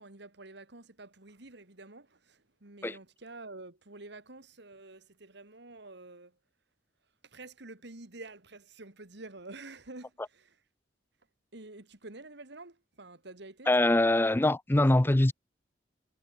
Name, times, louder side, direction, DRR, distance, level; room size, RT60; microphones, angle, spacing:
voice 1, 0.0-6.4 7.2-10.6 11.5-13.7 15.0-15.3, right 2 dB, 70° right, 2.5 m, -48 dB
voice 2, 13.7-15.3, left 1 dB, 10° left, 0.5 m, -23 dB
head